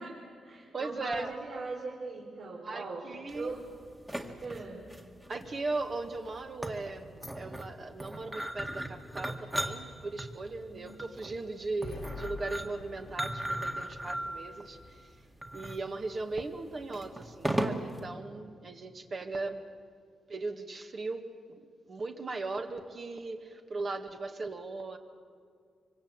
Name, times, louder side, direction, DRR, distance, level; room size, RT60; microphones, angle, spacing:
voice 1, 0.0-3.6 4.4-4.9 10.7-11.0, right 3 dB, 65° right, -2 dB, 4.0 m, -40 dB
voice 2, 0.7-1.3 2.6-3.5 5.3-15.1 15.5-19.7 20.3-25.0, right 3 dB, 40° right, 5 dB, 1.8 m, -38 dB
sound 1, 3.3-18.0, right 1 dB, 10° right, 2.0 m, -38 dB
Boom, 11.8-16.2, left 5 dB, 85° left, 2.1 m, -49 dB
25.5 x 24.5 x 8.9 m, 2.2 s
cardioid pair, 120°, 0 cm